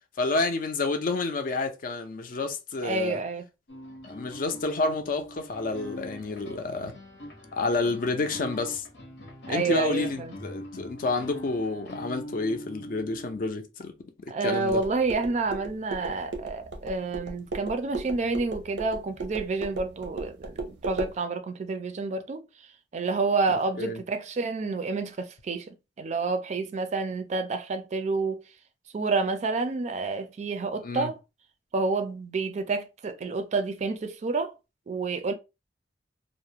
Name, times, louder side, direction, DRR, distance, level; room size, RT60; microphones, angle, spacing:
voice 1, 0.2-3.2 4.1-7.0 7.5-8.8 9.5-13.9 14.2-14.8 23.8-24.0 30.8-31.1, left 3 dB, 50° left, 0.4 m, -29 dB
voice 2, 2.8-3.5 9.5-10.3 14.3-22.4 22.9-28.4 28.9-31.2 31.7-34.5 34.9-35.3, right 3 dB, 40° right, 0.3 m, -29 dB
sound 1, 3.7-13.5, equal, 85° left, 0.8 m, -43 dB
sound 2, 14.7-21.2, right 3 dB, 90° right, 0.6 m, -37 dB
2.4 x 2.0 x 2.7 m
head